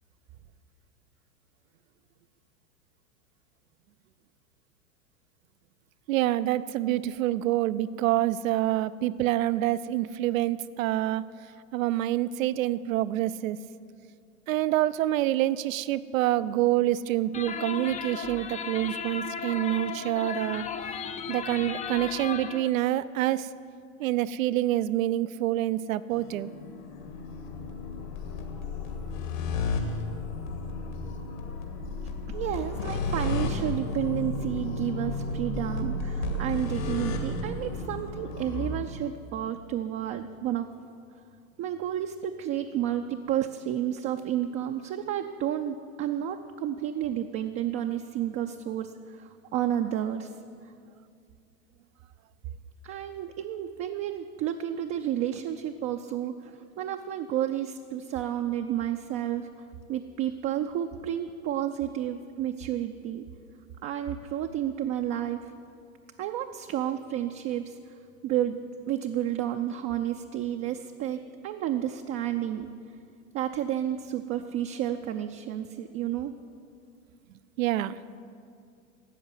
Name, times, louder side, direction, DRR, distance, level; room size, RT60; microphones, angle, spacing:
voice 1, 6.1-11.2 11.7-13.6 14.5-20.6 21.3-23.5 24.0-26.5 77.6-78.0, right 14 dB, 70° right, 16 dB, 0.7 m, -27 dB
sound 1, 17.3-22.7, left 6 dB, 20° left, 0.5 m, -36 dB
sound 2, 26.1-38.8, left 2 dB, 70° left, 2.4 m, -33 dB
voice 2, 32.3-40.7 41.6-50.3 52.8-59.5 59.9-63.3 63.8-65.5 66.2-68.0 68.2-68.6 68.9-72.7 73.3-76.3, right 11 dB, 30° right, 5 dB, 0.6 m, -31 dB
13.0 x 8.0 x 9.5 m, 2.4 s
hypercardioid pair, 110°, 41 cm